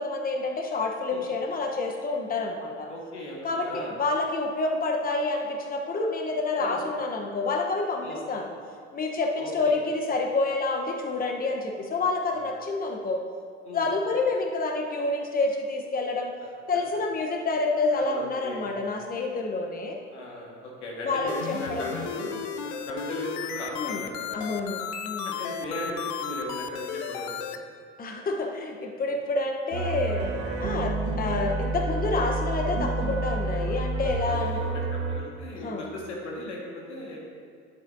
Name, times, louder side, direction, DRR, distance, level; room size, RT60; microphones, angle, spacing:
voice 1, 0.0-2.9 3.4-8.5 8.9-13.2 13.7-16.3 16.7-20.0 21.0-21.9 23.8-24.0 24.3-25.3 28.0-30.2 30.6-34.6 35.6-35.8, left 3 dB, 25° left, 2 dB, 1.1 m, -28 dB
voice 2, 2.9-3.9 6.6-6.9 8.0-8.2 9.4-9.8 12.3-12.4 13.6-13.9 17.9-18.8 20.1-22.3 22.6-24.5 25.2-27.4 31.0-31.1 34.2-37.2, left 1 dB, 85° left, -3 dB, 1.9 m, -37 dB
sound 1, 21.3-27.6, left 8 dB, 65° left, 0.7 m, -34 dB
sound 2, 29.7-35.2, right 3 dB, 65° right, 1.4 m, -29 dB
11.0 x 8.2 x 2.8 m, 2.2 s
hypercardioid pair, 65°, 34 cm